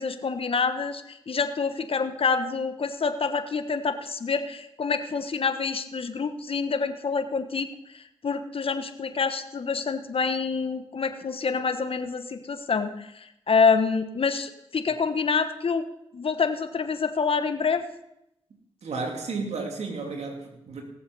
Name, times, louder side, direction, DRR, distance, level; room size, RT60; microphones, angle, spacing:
voice 1, 0.0-7.7 7.9-15.8 16.1-17.8, left 5 dB, 55° left, 9 dB, 1.1 m, -27 dB
voice 2, 18.8-20.8, right 4 dB, 75° right, 2 dB, 2.6 m, -32 dB
17.5 x 7.3 x 5.4 m, 0.82 s
supercardioid pair, 40°, 11 cm